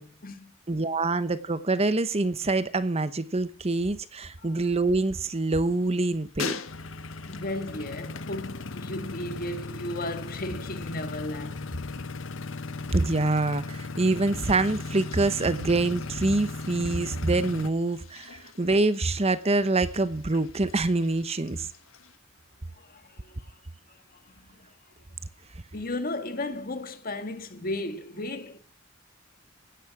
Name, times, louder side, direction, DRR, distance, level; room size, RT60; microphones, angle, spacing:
voice 1, 0.0-0.5 4.4-4.6 7.3-12.1 22.7-23.6 23.9-24.8 25.7-28.6, left 1 dB, 45° left, 1.8 m, -35 dB
voice 2, 0.7-6.5 12.9-21.7, right 2 dB, 30° right, 0.9 m, -25 dB
sound 1, 4.9-9.3 9.6-10.1 14.3-22.2, left 5 dB, 85° left, 1.4 m, -45 dB
sound 2, 6.7-17.7, left 3 dB, 65° left, 0.9 m, -37 dB
16.5 x 10.5 x 6.0 m
head